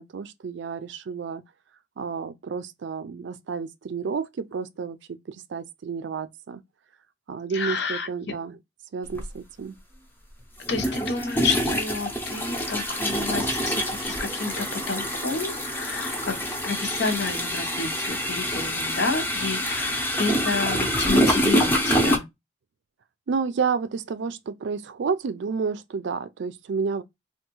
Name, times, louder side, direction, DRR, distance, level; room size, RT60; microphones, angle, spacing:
voice 1, 0.0-1.4 2.0-5.0 5.3-6.6 7.3-8.6 8.9-9.7 23.3-27.0, right 5 dB, 70° right, 0.4 m, -30 dB
voice 2, 7.5-8.1 10.7-22.3, left 4 dB, 65° left, 0.8 m, -30 dB
sound 1, 9.1-9.3 10.6-22.2, equal, 10° left, 0.6 m, -26 dB
3.4 x 2.3 x 2.9 m
head